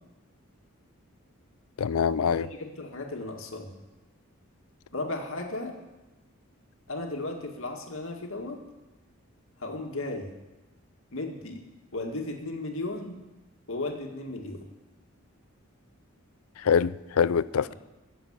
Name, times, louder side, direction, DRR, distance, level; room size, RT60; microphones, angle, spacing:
voice 1, 1.8-2.5 16.7-17.7, left 7 dB, 90° left, 18 dB, 0.4 m, -24 dB
voice 2, 2.3-3.8 4.9-5.8 6.9-8.6 9.6-10.3 11.1-11.6 11.9-13.2 13.7-14.7, left 2 dB, 70° left, 2 dB, 2.0 m, -35 dB
15.5 x 7.5 x 8.8 m, 1.1 s
head